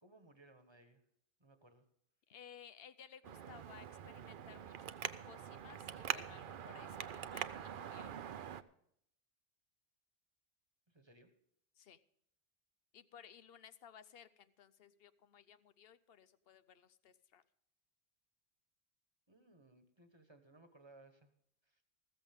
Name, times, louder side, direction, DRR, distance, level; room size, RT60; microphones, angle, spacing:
voice 1, 0.0-1.0 1.4-1.8 10.9-11.3 19.3-21.3 21.6-21.8, right 2 dB, 25° right, 8 dB, 1.3 m, -63 dB
voice 2, 2.3-8.2 11.8-12.0 12.9-17.4, left 8 dB, 70° left, 14 dB, 0.9 m, -59 dB
Traffic noise roadway noise, 3.2-8.6, right 9 dB, 60° right, 0.7 m, -44 dB
14.5 x 14.0 x 3.6 m, 0.70 s
omnidirectional pair, 1.0 m